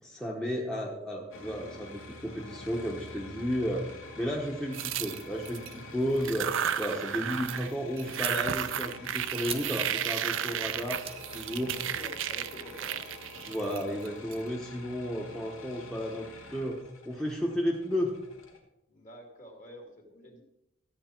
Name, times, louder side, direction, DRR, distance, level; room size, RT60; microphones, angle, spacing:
voice 1, 0.0-3.9 4.2-11.1 11.3-11.7 13.4-16.8 17.0-18.1, equal, 5° left, -2 dB, 1.0 m, -33 dB
sound 1, 1.3-18.6, left 2 dB, 85° left, 2.2 m, -47 dB
sound 2, 4.7-5.7 6.2-7.7 8.0-14.3, right 9 dB, 65° right, 0.5 m, -33 dB
sound 3, 8.2-8.3 9.1-11.5 11.8-12.1 12.5-13.6, right 7 dB, 30° right, 1.0 m, -42 dB
voice 2, 11.7-13.0 18.9-20.4, equal, 40° left, 2 dB, 2.3 m, -48 dB
13.5 x 8.7 x 4.4 m, 0.86 s
head